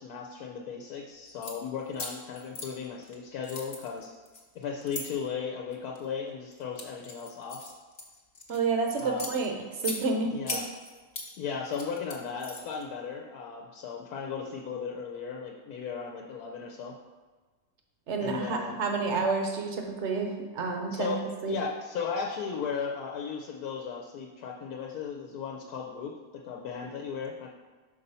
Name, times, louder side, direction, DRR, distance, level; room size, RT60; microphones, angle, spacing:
voice 1, 0.0-4.1 4.5-7.7 9.0-9.3 10.3-10.7 11.4-16.9 18.2-18.8 20.9-21.2 21.5-27.5, left 6 dB, 85° left, 0 dB, 1.2 m, -36 dB
sound 1, 1.2-1.5 1.9-3.1 3.4-5.0 5.7-6.0 6.5-8.6 9.0-10.0 10.5-11.3 11.6-12.8, left 2 dB, 35° left, 0.8 m, -38 dB
voice 2, 8.5-9.5 9.8-10.3 18.1-21.1 21.4-21.5, right 4 dB, 55° right, 3 dB, 1.0 m, -29 dB
5.5 x 4.0 x 5.4 m, 1.3 s
omnidirectional pair, 1.6 m